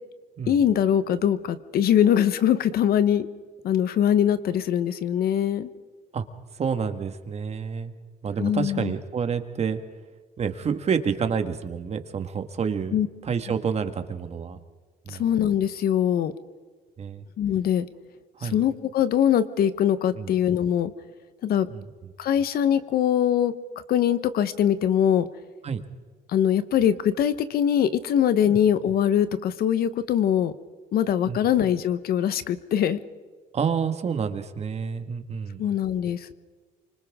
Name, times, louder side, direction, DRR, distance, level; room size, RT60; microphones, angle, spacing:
voice 1, 0.5-3.3 3.6-5.7 8.4-8.9 12.9-13.1 15.1-16.3 17.4-17.9 18.4-20.9 21.4-21.7 22.2-23.5 23.9-25.3 26.3-30.5 30.9-33.0 35.6-36.3, left 9 dB, 65° left, 13 dB, 1.1 m, -22 dB
voice 2, 6.5-7.9 8.2-9.8 10.4-13.0 13.2-14.6 15.1-15.2 17.0-17.3 18.4-18.6 20.2-20.3 21.7-21.9 25.6-25.8 28.5-28.6 31.3-31.4 33.5-35.6, right 6 dB, 40° right, 8 dB, 1.7 m, -28 dB
28.5 x 25.5 x 3.7 m, 1.5 s
cardioid pair, 110°, 17 cm